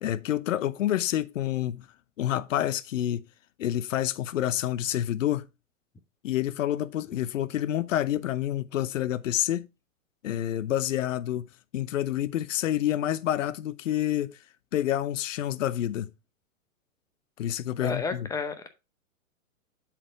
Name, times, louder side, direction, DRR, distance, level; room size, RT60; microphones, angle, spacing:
voice 1, 0.0-1.9 2.2-3.2 3.6-5.5 6.2-9.7 10.2-14.4 14.7-16.1 17.4-18.3, left 12 dB, 65° left, 0.7 m, -28 dB
voice 2, 17.8-18.7, left 4 dB, 10° left, 0.6 m, -31 dB
7.5 x 4.6 x 4.4 m
figure-of-eight pair, 110°, 42 cm